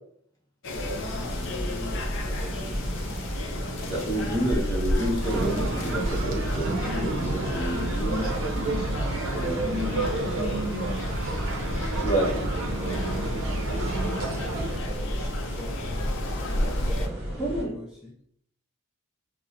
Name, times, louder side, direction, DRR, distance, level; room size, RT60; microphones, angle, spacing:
sound 1, 0.6-17.1, left 1 dB, 60° left, 0.5 m, -33 dB
voice 1, 0.7-3.9 9.3-13.4 14.4-18.2, equal, 5° right, -5 dB, 0.4 m, -41 dB
sound 2, 0.7-17.6, equal, 25° right, 1.3 m, -34 dB
voice 2, 3.9-8.3 9.3-9.5 12.0-12.3 16.3-16.7 17.4-17.8, right 1 dB, 20° left, -3 dB, 0.9 m, -29 dB
sound 3, 5.2-14.8, right 2 dB, 65° right, 0.6 m, -30 dB
5.5 x 2.0 x 2.5 m, 0.67 s
head